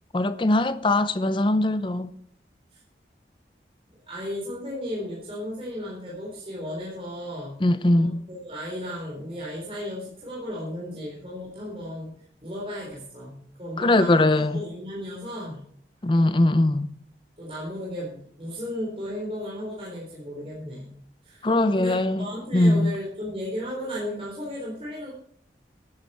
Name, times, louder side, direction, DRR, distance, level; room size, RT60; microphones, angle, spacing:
voice 1, 0.1-2.1 7.6-8.2 13.8-14.6 16.0-16.9 21.4-22.9, left 2 dB, 25° left, 0.6 m, -21 dB
voice 2, 4.1-7.6 7.9-12.1 12.4-15.6 17.4-20.9 21.2-25.1, equal, 30° right, 4.0 m, -35 dB
13.5 x 10.5 x 4.3 m
head